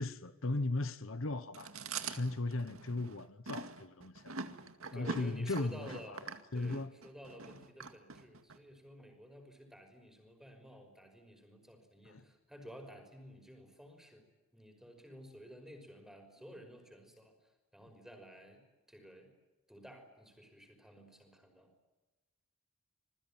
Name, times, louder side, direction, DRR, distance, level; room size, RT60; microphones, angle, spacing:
voice 1, 0.0-4.4 4.9-6.2 6.5-6.9 12.0-12.3, left 2 dB, 70° left, 1.2 m, -37 dB
Chewing mastication, 1.5-8.6, right 4 dB, 80° right, 2.1 m, -44 dB
voice 2, 4.9-14.3 14.5-18.6 18.9-19.3 19.7-21.7, equal, ahead, 5.6 m, -53 dB
28.0 x 21.0 x 9.0 m
head